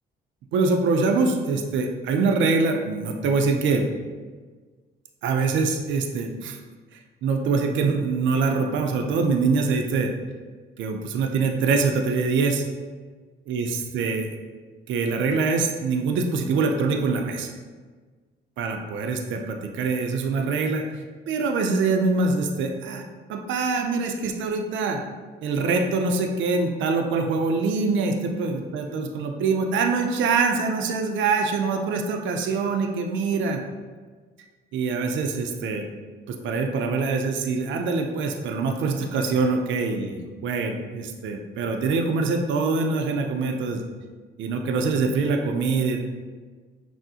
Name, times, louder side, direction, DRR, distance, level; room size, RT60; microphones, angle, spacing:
voice 1, 0.5-3.9 5.2-6.6 7.2-10.1 10.8-12.6 13.5-14.3 14.9-17.5 18.6-23.0 23.3-25.0 25.4-33.6 34.7-35.9 36.3-43.8 44.4-46.0, right 4 dB, 70° right, 3 dB, 0.5 m, -24 dB
6.1 x 2.0 x 2.7 m, 1.4 s
cardioid pair, 90°, 20 cm